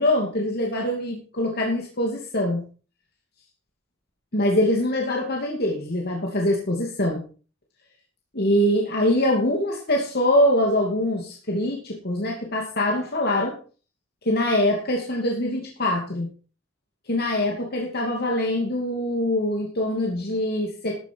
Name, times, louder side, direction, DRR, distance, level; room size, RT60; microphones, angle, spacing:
voice 1, 0.0-2.6 4.3-7.2 8.3-13.6 14.3-16.3 17.1-21.0, left 1 dB, 50° left, -1 dB, 2.6 m, -23 dB
13.5 x 9.0 x 4.6 m, 0.37 s
head